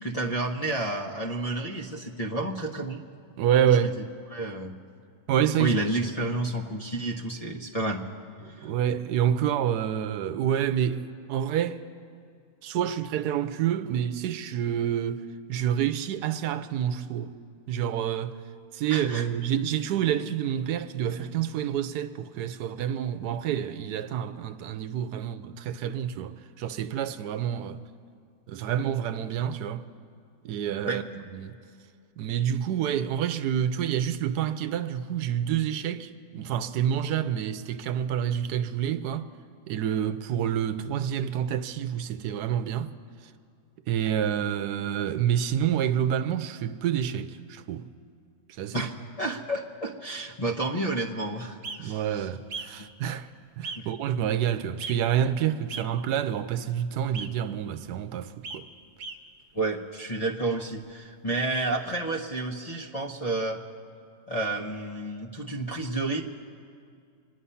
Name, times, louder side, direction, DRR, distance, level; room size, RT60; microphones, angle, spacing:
voice 1, 0.0-3.0 3.7-3.9 4.3-4.7 5.6-8.0 8.6-8.7 18.9-19.3 30.9-31.0 48.7-52.3 52.8-52.9 53.8-53.9 59.5-63.6 64.3-66.2, right 2 dB, 30° left, 0.8 m, -30 dB
voice 2, 3.4-4.0 5.3-5.8 8.4-11.8 12.6-15.2 15.5-17.4 17.7-18.4 18.7-27.8 28.5-29.9 30.4-31.6 32.2-39.3 39.7-42.9 43.9-47.9 48.6-48.9 51.8-53.3 53.6-58.7, right 9 dB, 90° right, 1.2 m, -28 dB
sound 1, 51.6-51.8 52.5-52.7 53.6-53.8 54.8-55.0 55.7-55.8 57.1-57.3 58.4-58.6 59.0-59.2 61.5-61.7, right 4 dB, 50° right, 0.9 m, -36 dB
26.0 x 9.9 x 5.6 m
omnidirectional pair, 1.7 m